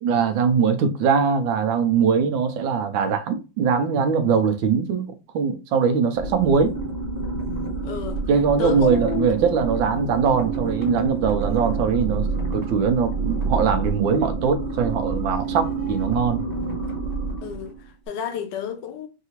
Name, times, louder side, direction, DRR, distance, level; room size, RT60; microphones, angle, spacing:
voice 1, 0.0-6.8 8.3-16.4, right 6 dB, 85° right, 1.5 m, -21 dB
sound 1, 6.1-17.9, right 3 dB, 10° right, 1.2 m, -28 dB
voice 2, 7.8-8.2 8.6-9.3 17.4-19.1, left 8 dB, 75° left, 1.2 m, -30 dB
4.7 x 2.7 x 2.9 m
omnidirectional pair, 2.1 m